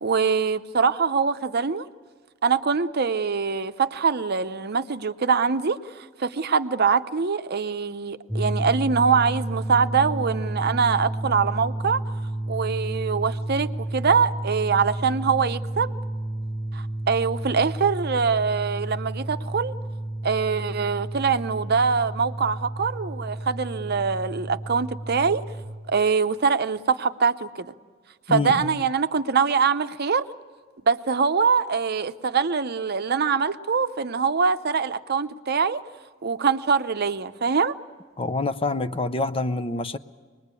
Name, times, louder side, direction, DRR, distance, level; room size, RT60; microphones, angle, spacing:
voice 1, 0.0-1.9 2.4-12.0 12.5-16.0 16.7-19.7 20.2-25.4 25.9-27.7 28.3-30.3 30.9-35.8 36.2-37.7, right 5 dB, 50° right, 0.7 m, -23 dB
sound 1, 8.3-25.7, right 1 dB, 10° right, 6.9 m, -31 dB
voice 2, 28.3-28.8 38.2-40.0, left 3 dB, 25° left, 0.6 m, -26 dB
24.5 x 20.5 x 8.2 m
head